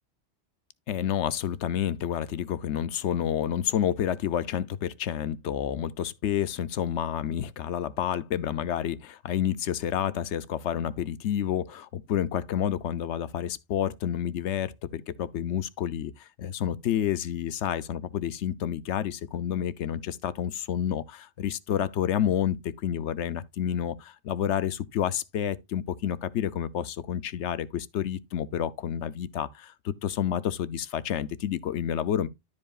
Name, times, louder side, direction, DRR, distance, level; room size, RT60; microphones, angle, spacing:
voice 1, 0.9-32.3, left 10 dB, 80° left, 1.0 m, -29 dB
13.0 x 4.8 x 2.3 m
omnidirectional pair, 1.2 m